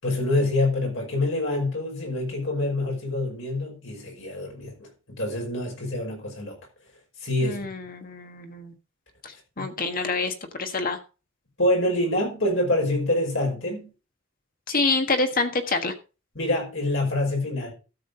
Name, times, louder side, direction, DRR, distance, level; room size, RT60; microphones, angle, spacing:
voice 1, 0.0-6.6 7.2-7.6 9.6-9.7 11.6-13.9 16.4-17.7, left 1 dB, 70° left, 5.3 m, -26 dB
voice 2, 7.4-8.7 9.6-10.3 10.6-11.0 14.7-15.9, left 3 dB, 45° left, 1.4 m, -26 dB
13.0 x 7.4 x 3.9 m
head